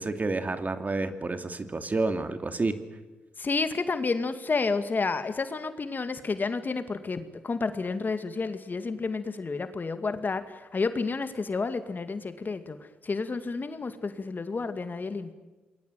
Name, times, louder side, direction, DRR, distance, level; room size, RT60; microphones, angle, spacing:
voice 1, 0.0-2.8, right 3 dB, 35° right, 9 dB, 2.6 m, -29 dB
voice 2, 3.4-12.8 13.0-15.3, left 4 dB, 40° left, 10 dB, 2.3 m, -30 dB
27.5 x 21.5 x 9.4 m, 1.2 s
hypercardioid pair, 45°, 5 cm